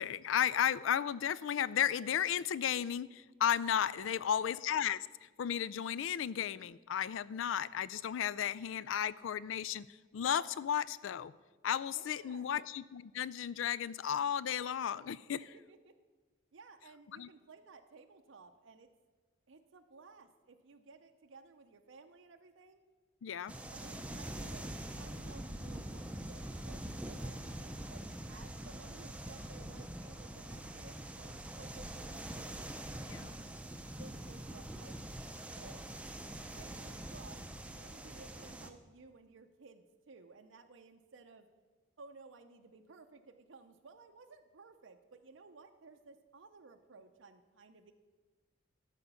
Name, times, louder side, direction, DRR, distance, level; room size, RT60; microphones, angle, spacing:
voice 1, 0.0-9.9 10.1-11.3 11.6-15.4 17.1-17.3 23.2-23.5 33.1-33.4, left 9 dB, 90° left, 19 dB, 0.3 m, -34 dB
voice 2, 3.8-4.3 11.9-12.5 15.5-16.0 16.5-18.9 19.5-22.8 23.7-24.6 25.0-28.0 28.3-32.7 33.8-35.3 35.6-35.9 36.6-41.5 42.0-47.9, right 4 dB, 90° right, 6 dB, 0.6 m, -57 dB
sound 1, 23.5-38.7, right 1 dB, 5° right, 0.5 m, -44 dB
13.0 x 5.0 x 6.9 m, 1.3 s
head